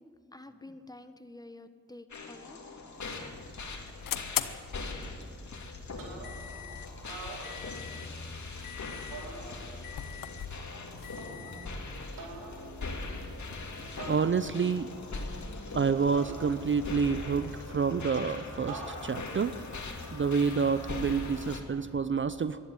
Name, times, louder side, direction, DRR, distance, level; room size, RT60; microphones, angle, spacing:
voice 1, 0.0-3.3, left 2 dB, 10° left, 10 dB, 1.2 m, -50 dB
sound 1, 2.1-21.6, left 3 dB, 60° left, 2.3 m, -41 dB
sound 2, 2.9-15.3, left 10 dB, 85° left, 0.7 m, -43 dB
sound 3, 6.0-6.6 7.0-8.1 9.1-10.0 11.2-11.7 12.2-12.7 14.0-14.8 16.1-17.1 18.7-19.4, right 3 dB, 90° right, 2.4 m, -45 dB
voice 2, 14.1-14.9 15.7-19.5 20.1-22.6, right 5 dB, 40° right, 13 dB, 0.6 m, -28 dB
13.0 x 11.0 x 9.5 m, 2.4 s
supercardioid pair, 40°, 32 cm